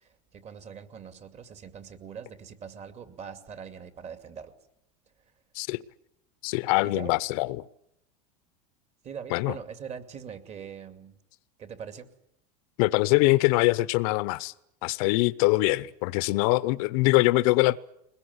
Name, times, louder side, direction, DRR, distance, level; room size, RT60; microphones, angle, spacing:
voice 1, 0.0-4.5 6.8-7.1 9.0-11.2 11.6-12.1, right 7 dB, 35° right, 2.6 m, -42 dB
voice 2, 6.4-7.6 9.3-9.6 12.8-14.5 14.8-17.8, left 21 dB, 65° left, 0.9 m, -23 dB
22.0 x 21.0 x 9.8 m
supercardioid pair, 130°, 19 cm